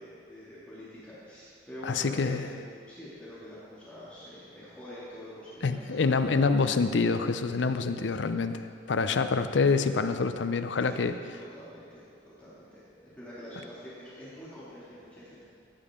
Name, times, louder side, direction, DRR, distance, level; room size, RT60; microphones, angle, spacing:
voice 1, 0.0-6.4 9.1-9.3 10.9-11.0 11.3-15.4, equal, 10° left, -12 dB, 2.4 m, -46 dB
voice 2, 1.8-2.5 5.6-11.1, left 4 dB, 75° left, 10 dB, 0.5 m, -26 dB
15.0 x 8.5 x 3.7 m, 2.2 s
head